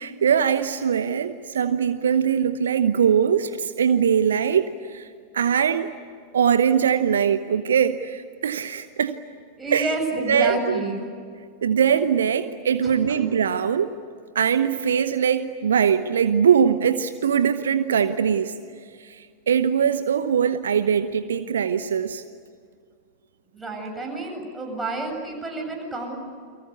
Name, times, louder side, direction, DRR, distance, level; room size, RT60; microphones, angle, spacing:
voice 1, 0.0-5.1 5.3-5.9 6.3-9.2 9.7-9.9 10.3-10.8 11.6-13.9 14.3-18.5 19.0-22.2, right 7 dB, 65° right, 12 dB, 0.9 m, -21 dB
voice 2, 9.6-11.0 12.8-13.2 23.5-26.2, right 2 dB, 10° right, 0 dB, 7.9 m, -29 dB
30.0 x 23.5 x 8.3 m, 2.2 s
figure-of-eight pair, 90°, 0 cm